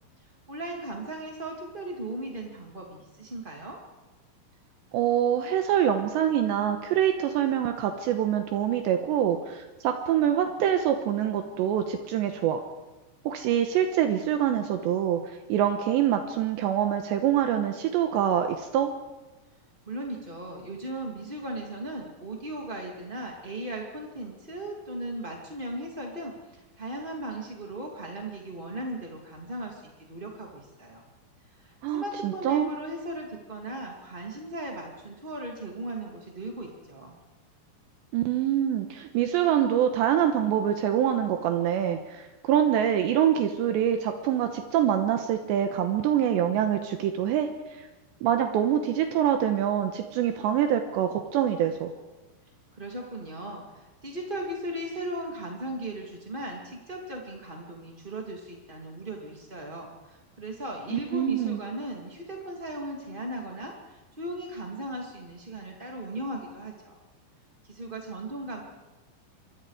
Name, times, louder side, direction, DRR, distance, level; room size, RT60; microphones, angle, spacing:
voice 1, 0.5-3.8 19.9-31.0 31.5-37.2 52.7-67.0 67.7-68.6, right 1 dB, 25° right, 0 dB, 1.1 m, -37 dB
voice 2, 4.9-12.6 13.2-18.9 31.8-32.7 38.1-47.9 48.2-51.9 60.9-61.6, right 10 dB, 75° right, 6 dB, 3.2 m, -25 dB
26.5 x 24.0 x 4.9 m, 1.1 s
omnidirectional pair, 5.3 m